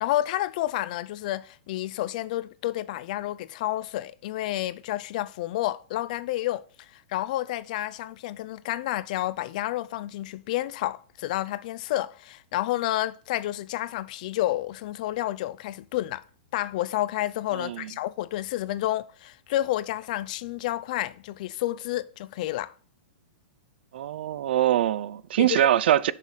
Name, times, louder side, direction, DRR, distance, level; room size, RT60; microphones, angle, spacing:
voice 1, 0.0-16.2 16.5-22.7 25.4-25.7, left 15 dB, 45° left, 0.3 m, -30 dB
voice 2, 17.6-17.9 23.9-26.1, right 12 dB, 65° right, 0.4 m, -23 dB
6.7 x 4.8 x 5.4 m
supercardioid pair, 165°, 6 cm